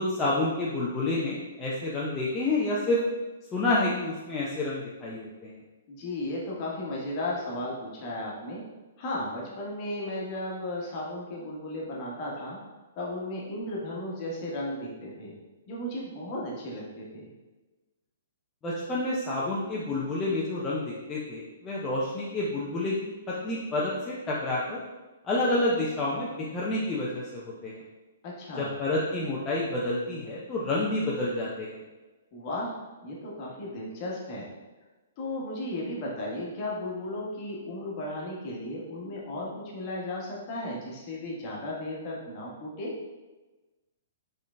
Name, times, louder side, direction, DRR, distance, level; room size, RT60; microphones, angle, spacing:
voice 1, 0.0-3.0 3.5-5.5 18.6-24.8 25.3-27.7 28.6-31.8, left 2 dB, 20° left, -6 dB, 0.6 m, -29 dB
voice 2, 5.9-8.6 9.0-12.6 13.0-15.3 15.7-17.3 28.2-28.7 32.3-32.7 33.0-34.5 35.2-42.9, left 1 dB, 40° left, -4 dB, 1.2 m, -35 dB
5.0 x 3.8 x 2.2 m, 1.2 s
figure-of-eight pair, 120°, 0 cm